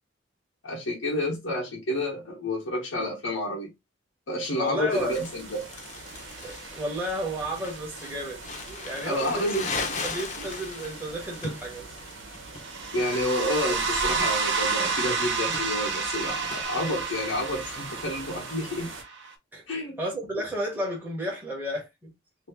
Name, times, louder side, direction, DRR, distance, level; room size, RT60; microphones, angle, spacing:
voice 1, 0.6-3.7 4.3-5.6 9.0-9.8 12.9-18.9 19.7-20.0, left 1 dB, 80° left, 1.1 m, -29 dB
voice 2, 4.5-5.2 6.4-11.9 19.5-19.6 20.0-22.1, equal, 10° right, 0.9 m, -33 dB
sound 1, 4.9-19.0, right 3 dB, 85° right, 1.1 m, -44 dB
Crumpling crinkling, 5.1-16.6, left 3 dB, 40° left, 0.7 m, -38 dB
sound 2, 6.3-7.3 12.6-19.3, right 4 dB, 65° right, 0.7 m, -30 dB
2.8 x 2.6 x 3.4 m
head